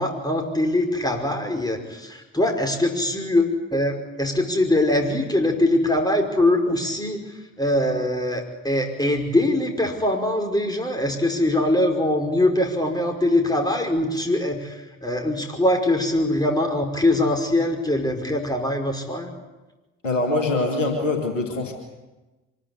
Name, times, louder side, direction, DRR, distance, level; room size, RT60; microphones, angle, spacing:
voice 1, 0.0-7.3 7.6-14.8 15.0-19.3, left 1 dB, 10° left, 3 dB, 5.4 m, -22 dB
voice 2, 20.0-21.7, left 2 dB, 90° left, 3 dB, 2.0 m, -23 dB
24.0 x 14.0 x 9.9 m, 1.1 s
figure-of-eight pair, 40°, 37 cm